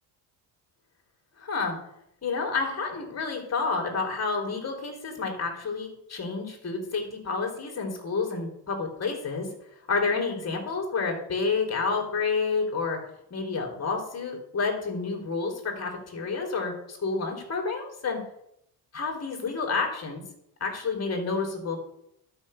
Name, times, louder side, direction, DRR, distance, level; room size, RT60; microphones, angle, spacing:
voice 1, 1.4-1.8 2.2-9.5 9.9-13.0 13.3-18.2 18.9-20.2 20.6-21.8, left 4 dB, 35° left, 1 dB, 3.6 m, -29 dB
11.5 x 5.7 x 6.5 m, 0.77 s
cardioid pair, 100°, 44 cm